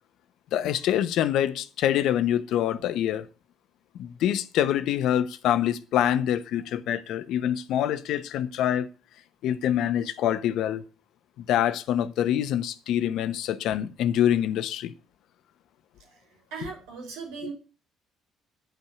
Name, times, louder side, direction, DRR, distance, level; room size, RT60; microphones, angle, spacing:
voice 1, 0.5-3.3 4.0-8.9 9.4-10.8 11.4-14.9, left 11 dB, 70° left, 0.9 m, -25 dB
voice 2, 16.0-17.5, right 5 dB, 85° right, 3.5 m, -39 dB
10.5 x 5.9 x 8.0 m
supercardioid pair, 65°, 0 cm